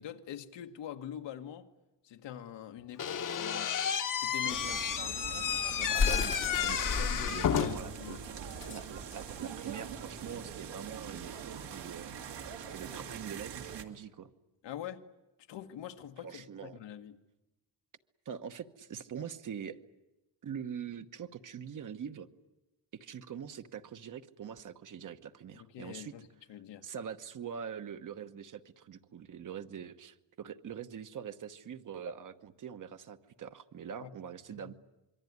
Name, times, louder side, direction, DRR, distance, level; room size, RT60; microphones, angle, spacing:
voice 1, 0.0-1.7 2.0-3.7 4.2-4.9 5.8-6.1 7.0-8.2 14.6-15.1 15.5-17.2 25.5-26.9 34.0-34.1 34.6-34.7, left 10 dB, 80° left, 1.6 m, -44 dB
Slam / Squeak, 3.0-8.0, left 8 dB, 45° left, 1.2 m, -32 dB
sound 1, 4.4-13.8, right 7 dB, 75° right, 2.4 m, -43 dB
sound 2, 4.9-10.5, left 5 dB, 30° left, 1.0 m, -35 dB
voice 2, 5.9-6.3 6.6-6.8 7.2-8.2 8.7-12.4 12.7-14.3 16.2-16.8 18.2-19.8 20.4-22.3 23.0-26.1 26.8-34.7, right 8 dB, 45° right, 1.2 m, -43 dB
26.0 x 23.5 x 9.6 m
cardioid pair, 145°, 42 cm